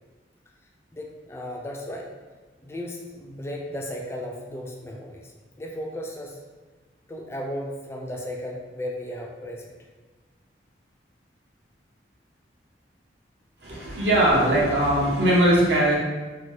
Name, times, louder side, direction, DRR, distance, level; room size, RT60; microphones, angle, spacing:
voice 1, 0.9-2.1 2.6-5.3 5.6-6.4 7.1-9.8 13.7-13.9, equal, 15° left, -1 dB, 0.3 m, -35 dB
voice 2, 13.6-16.0, right 1 dB, 75° right, -4 dB, 0.8 m, -20 dB
2.8 x 2.1 x 3.1 m, 1.3 s
head